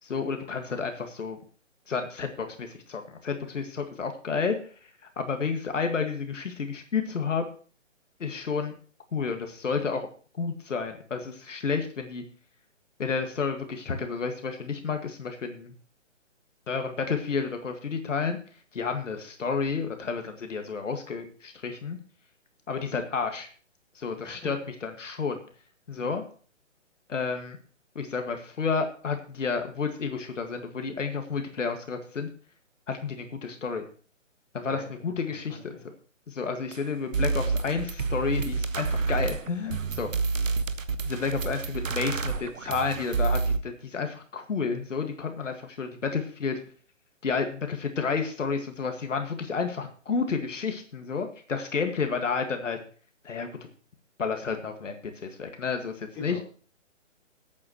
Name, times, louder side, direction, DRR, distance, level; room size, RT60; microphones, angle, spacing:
voice 1, 0.0-1.4 1.9-4.6 5.2-7.5 8.2-8.7 9.1-10.1 10.4-12.2 13.0-15.7 16.7-18.4 18.7-22.0 22.7-23.5 24.0-24.6 24.8-25.4 25.9-26.2 27.1-27.6 28.0-32.3 32.9-33.8 34.5-35.6 36.3-40.1 41.0-46.6 47.2-52.8 53.2-53.7 54.2-56.4, left 5 dB, 75° left, 5 dB, 1.9 m, -31 dB
voice 2, 24.2-24.5 25.9-26.2 34.7-35.9 56.1-56.4, left 3 dB, 10° left, -5 dB, 3.6 m, -43 dB
sound 1, 36.7-36.8 37.1-43.6, right 4 dB, 90° right, 1.2 m, -28 dB
19.5 x 8.6 x 3.0 m, 0.41 s
hypercardioid pair, 155°, 38 cm